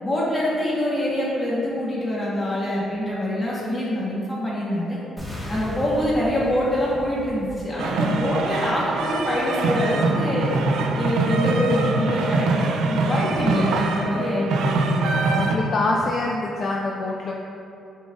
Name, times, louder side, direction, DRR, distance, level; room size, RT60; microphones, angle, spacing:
voice 1, 0.0-5.0 5.5-10.5 10.9-15.0, left 1 dB, 25° left, -7 dB, 1.3 m, -25 dB
sound 1, 5.2-9.2, left 1 dB, 5° left, 1.0 m, -37 dB
sound 2, 7.8-15.6, right 3 dB, 85° right, 0.3 m, -23 dB
voice 2, 15.3-17.4, left 2 dB, 50° left, -2 dB, 0.3 m, -25 dB
6.3 x 2.5 x 2.5 m, 2.7 s
cardioid pair, 90°, 0 cm